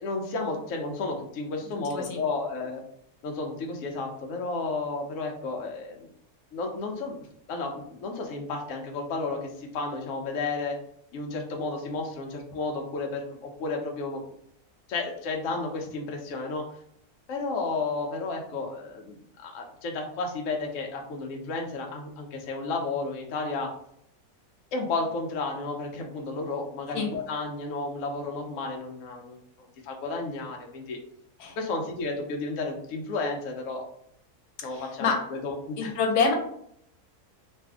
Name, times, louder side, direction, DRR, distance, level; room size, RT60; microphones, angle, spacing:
voice 1, 0.0-2.8 3.2-6.1 6.5-7.1 7.5-10.8 11.1-14.2 14.9-16.7 17.3-23.7 24.7-31.0 31.6-33.9 34.6-35.9, left 3 dB, 65° left, 2 dB, 0.9 m, -32 dB
voice 2, 34.7-35.2 35.8-36.3, left 5 dB, 85° left, 2 dB, 1.2 m, -26 dB
2.6 x 2.5 x 3.4 m, 0.70 s
omnidirectional pair, 1.6 m